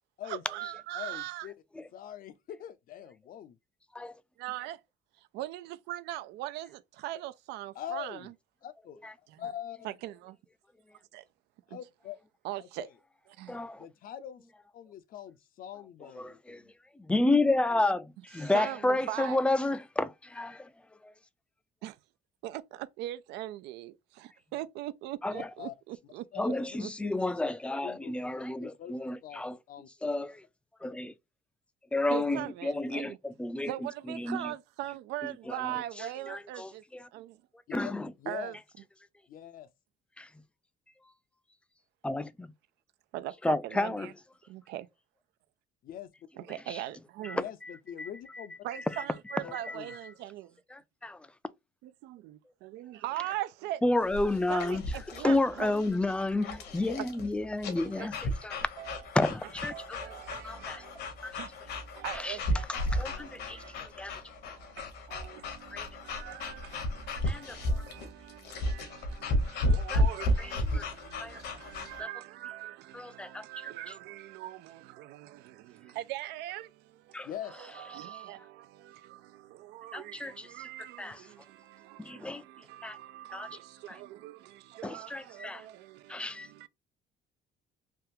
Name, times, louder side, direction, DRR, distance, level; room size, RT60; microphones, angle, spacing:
voice 1, 0.2-1.5 4.4-4.8 5.2-8.3 9.3-9.5 9.8-10.4 11.1-11.2 11.7-11.8 12.4-12.9 13.4-13.6 18.4-19.4 21.8-22.0 22.4-26.9 32.1-33.2 33.7-36.8 37.1-37.4 38.3-38.6 43.1-44.1 44.5-44.9 46.4-47.4 48.6-50.6 51.8-53.8 54.5-55.8 56.9-57.1 58.0-58.1 58.5-59.0 59.7-86.7, right 15 dB, 85° right, 0.4 m, -41 dB
voice 2, 0.9-1.5 1.9-3.6 7.8-8.3 8.6-9.0 9.4-9.9 11.7-12.2 12.6-12.9 13.8-14.4 14.7-16.7 25.3-25.7 26.3-27.3 27.8-28.1 28.6-28.9 29.2-29.4 29.7-29.9 37.7-37.9 38.2-38.6 39.3-39.7 45.8-46.1 47.3-48.6 49.4-49.9 77.2-77.5, left 10 dB, 55° left, 0.5 m, -43 dB
voice 3, 13.5-13.9 16.1-16.6 17.0-20.7 21.0-21.1 25.2-25.5 26.4-29.6 30.0-30.4 30.8-31.1 31.9-33.7 34.1-34.5 35.5-37.1 37.7-38.1 40.2-40.3 42.0-42.5 43.4-44.1 46.7-46.8 47.2-47.7 48.0-48.5 48.9-50.0 50.7-51.3 53.8-54.9 55.2-58.7 59.1-60.2 60.4-60.8 61.2-61.4 62.1-62.4 62.9-64.1 65.7-65.9 67.3-67.8 69.9-70.1 70.4-70.9 71.2-71.4 72.0-72.1 72.9-73.5 77.1-77.3 79.9-80.5 81.0-81.2 82.0-82.4 82.8-83.0 83.3-83.5 83.9-84.0 84.8-85.6 86.1-86.5, left 2 dB, 5° left, 0.3 m, -31 dB
sound 1, 54.0-72.0, left 1 dB, 75° left, 1.1 m, -33 dB
3.4 x 2.3 x 2.7 m
cardioid pair, 110°, 17 cm